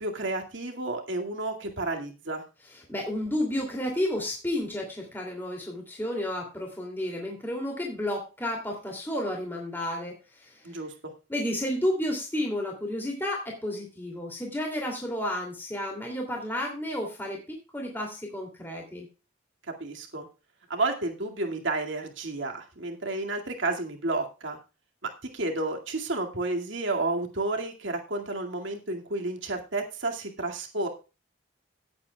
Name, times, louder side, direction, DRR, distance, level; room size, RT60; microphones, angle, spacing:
voice 1, 0.0-2.4 10.6-10.9 19.8-20.3 20.7-24.6 25.2-30.9, right 2 dB, 70° right, 2 dB, 2.2 m, -31 dB
voice 2, 2.7-10.8 11.3-19.1, left 1 dB, 10° left, 0 dB, 2.7 m, -32 dB
17.5 x 8.6 x 2.3 m, 0.30 s
head